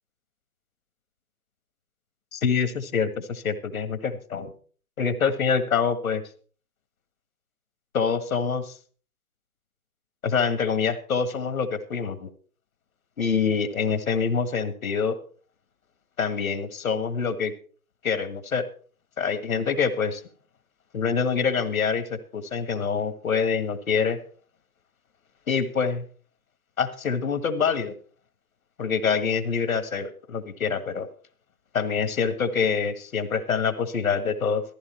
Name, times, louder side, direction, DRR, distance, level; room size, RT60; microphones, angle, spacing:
voice 1, 2.3-4.5 5.0-6.2 7.9-8.7 10.2-12.3 13.2-15.2 16.2-17.5 18.0-18.6 19.2-20.2 20.9-24.2 25.5-26.1 26.8-27.9 28.8-31.1 31.7-34.6, left 6 dB, 65° left, 10 dB, 1.8 m, -25 dB
14.5 x 10.5 x 4.4 m, 0.42 s
hypercardioid pair, 145°, 45 cm